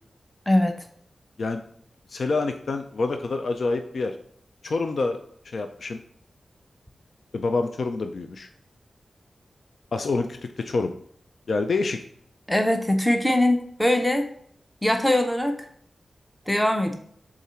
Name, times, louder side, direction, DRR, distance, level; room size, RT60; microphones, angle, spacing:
voice 1, 0.5-0.8 12.5-14.3 14.8-15.6 16.5-17.0, left 1 dB, 5° left, 6 dB, 0.6 m, -21 dB
voice 2, 2.1-4.2 4.6-6.0 7.3-8.5 9.9-10.9 11.5-12.0, left 3 dB, 60° left, 6 dB, 0.5 m, -27 dB
7.0 x 3.8 x 4.3 m, 0.63 s
wide cardioid pair, 145°, 0 cm